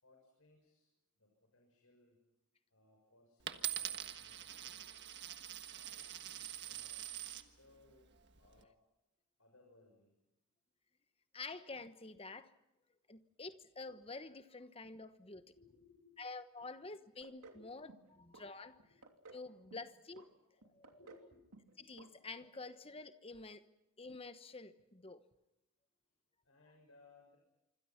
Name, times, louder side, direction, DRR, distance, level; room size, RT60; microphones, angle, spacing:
voice 1, 0.0-0.9 1.2-2.2 2.7-5.1 5.7-8.1 8.4-8.7 9.4-10.1 15.4-16.3 16.6-16.7 17.5-17.7 18.2-18.3 20.8-21.4 26.4-27.4, left 2 dB, 65° left, 6.5 m, -66 dB
Coin (dropping), 3.5-7.5 8.2-8.6, right 11 dB, 50° right, 1.5 m, -44 dB
voice 2, 11.3-12.5 13.1-15.5 16.2-18.9 19.3-20.3 20.6-21.0 21.8-23.6 24.0-25.2, left 3 dB, 25° left, 1.1 m, -49 dB
sound 1, 17.2-17.6 17.9-18.5 18.8-19.4 19.7-20.3 20.6-21.3 21.5-21.7 22.0-22.1 22.4-22.5, right 3 dB, 90° right, 2.9 m, -57 dB
26.5 x 26.0 x 5.9 m
head